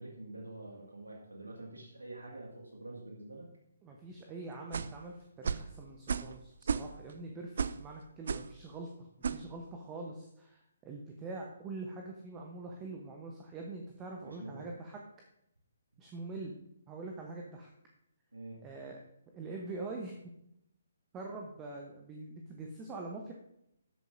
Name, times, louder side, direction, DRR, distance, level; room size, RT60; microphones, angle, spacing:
voice 1, 0.0-3.5 14.2-14.7 18.3-18.6, right 2 dB, 75° right, -1 dB, 1.9 m, -46 dB
voice 2, 3.8-15.0 16.0-16.6 16.9-17.7 18.6-19.0 19.3-20.2 21.1-23.3, right 3 dB, 15° right, 1 dB, 0.9 m, -44 dB
sound 1, 4.7-5.0 5.4-5.7 6.1-6.4 6.6-7.1 7.6-7.8 8.3-8.5 9.2-9.4, right 6 dB, 50° right, 0.4 m, -33 dB
13.5 x 7.8 x 2.6 m, 0.79 s
figure-of-eight pair, 135°, 0 cm